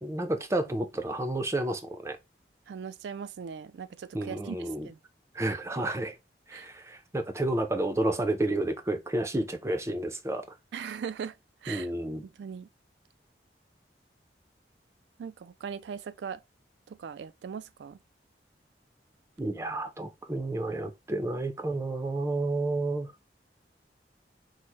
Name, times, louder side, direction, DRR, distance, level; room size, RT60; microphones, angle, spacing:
voice 1, 0.0-2.2 4.1-4.9 5.3-6.2 6.5-10.4 11.7-12.3 19.4-23.1, right 2 dB, 15° right, 0.5 m, -30 dB
voice 2, 2.7-5.0 6.5-6.7 10.7-11.4 11.6-11.9 12.4-12.7 15.2-16.4 16.9-18.0, right 7 dB, 80° right, 0.3 m, -39 dB
4.7 x 2.1 x 4.3 m
head